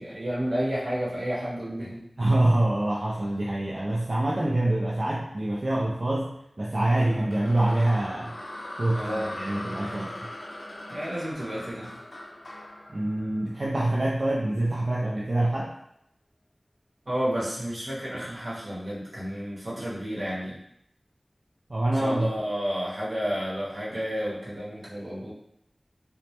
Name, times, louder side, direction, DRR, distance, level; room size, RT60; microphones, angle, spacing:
voice 1, 0.0-2.0 8.9-9.3 10.9-12.0 17.1-20.6 21.9-25.3, equal, 80° right, -8 dB, 0.8 m, -31 dB
voice 2, 2.2-8.4 8.8-10.2 12.9-15.7 21.7-22.3, right 1 dB, 60° right, -5 dB, 0.3 m, -25 dB
sound 1, 7.0-14.1, left 1 dB, 75° left, 0.4 m, -40 dB
2.1 x 2.0 x 2.8 m, 0.76 s
wide cardioid pair, 55°, 0 cm